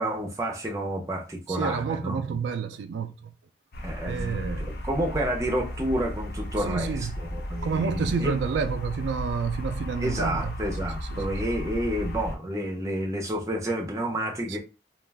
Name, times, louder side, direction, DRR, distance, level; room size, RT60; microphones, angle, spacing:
voice 1, 0.0-2.4 3.8-8.4 10.0-14.6, right 1 dB, 20° right, 0.5 m, -30 dB
voice 2, 1.5-3.3 4.0-4.7 6.6-7.1 7.6-10.6 11.1-11.3 14.5-14.6, right 5 dB, 90° right, 0.3 m, -29 dB
sound 1, 3.7-12.4, left 1 dB, 55° left, 0.5 m, -34 dB
2.3 x 2.2 x 3.3 m
head